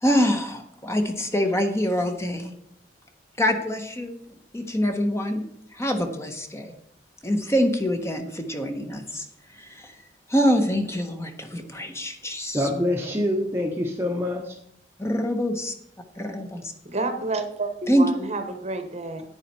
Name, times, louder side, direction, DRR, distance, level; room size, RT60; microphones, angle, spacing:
voice 1, 0.0-2.5 3.4-4.2 4.5-5.4 5.7-6.7 7.2-9.3 9.5-9.9 10.3-12.7 15.0-15.7 16.2-16.7 17.9-18.1, equal, 15° left, 5 dB, 1.1 m, -25 dB
voice 2, 12.5-14.6, left 1 dB, 15° right, 1 dB, 1.0 m, -25 dB
voice 3, 16.8-19.2, right 3 dB, 35° right, 8 dB, 1.1 m, -29 dB
9.9 x 9.8 x 4.3 m, 0.70 s
head